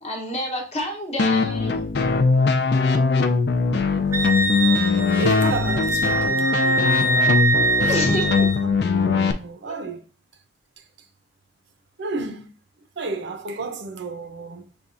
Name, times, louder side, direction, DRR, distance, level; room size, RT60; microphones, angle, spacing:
voice 1, 0.0-1.8 7.9-8.2 9.7-9.8, left 1 dB, 35° left, 0.9 m, -28 dB
sound 1, 1.2-9.3, left 4 dB, 55° left, 0.4 m, -21 dB
Wind instrument woodwind instrument, 4.1-8.6, right 2 dB, 15° right, 0.4 m, -23 dB
voice 2, 5.2-7.0 7.5-8.7 9.1-10.0 12.0-12.5 13.0-14.6, right 3 dB, 65° right, 0.6 m, -31 dB
6.9 x 2.3 x 2.5 m
head